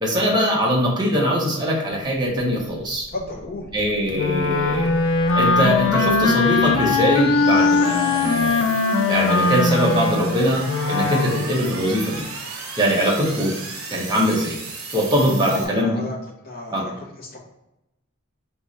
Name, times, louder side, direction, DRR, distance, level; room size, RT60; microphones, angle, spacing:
voice 1, 0.0-3.1 3.7-4.9 5.3-8.7 9.1-12.2 12.8-13.5 13.9-14.6 14.9-16.0 16.7-16.8, equal, 20° right, -3 dB, 1.1 m, -22 dB
sound 1, 2.7-15.7, right 3 dB, 70° right, 1.0 m, -35 dB
voice 2, 3.1-3.7 15.4-16.2 16.4-17.4, left 2 dB, 45° left, -1 dB, 1.0 m, -33 dB
Wind instrument woodwind instrument, 4.1-11.5, left 3 dB, 65° left, 0.5 m, -20 dB
3.4 x 3.1 x 4.1 m, 0.89 s
head